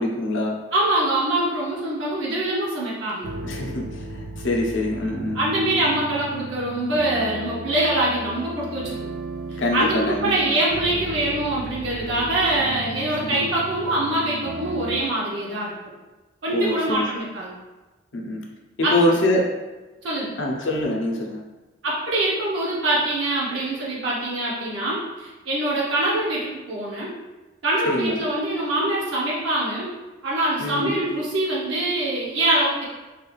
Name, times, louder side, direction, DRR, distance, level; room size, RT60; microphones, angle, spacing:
voice 1, 0.0-0.6 3.4-5.4 9.6-10.6 13.3-13.4 16.5-17.0 18.1-18.4 18.8-19.5 20.4-21.4 27.9-28.2 30.6-31.0, left 1 dB, 75° left, 0 dB, 0.6 m, -24 dB
voice 2, 0.7-3.3 5.3-9.1 9.5-15.7 16.4-17.5 18.8-18.9 20.0-20.3 21.8-27.1 27.6-29.9 30.2-32.8, right 1 dB, 75° right, -6 dB, 0.7 m, -24 dB
sound 1, 3.2-15.0, right 1 dB, 50° right, 0.3 m, -35 dB
3.3 x 2.3 x 3.0 m, 1.2 s
head